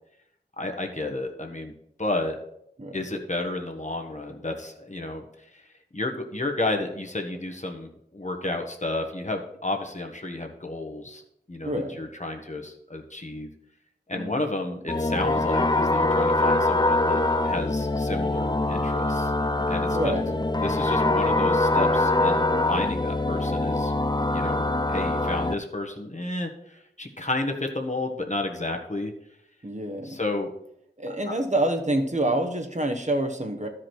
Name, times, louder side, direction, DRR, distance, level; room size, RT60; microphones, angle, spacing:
voice 1, 0.6-1.7 2.0-2.4 2.9-5.6 5.9-11.2 11.5-13.5 14.1-19.3 19.7-20.1 20.6-23.9 24.3-29.1 30.0-30.5, left 2 dB, 45° left, 3 dB, 1.4 m, -31 dB
voice 2, 11.6-12.1 14.1-14.5 19.9-20.4 29.6-30.2 31.0-33.7, right 1 dB, 45° right, 3 dB, 1.2 m, -27 dB
sound 1, 14.9-25.5, left 2 dB, 25° left, 0.5 m, -24 dB
12.5 x 4.9 x 4.6 m, 0.75 s
wide cardioid pair, 40°, 17 cm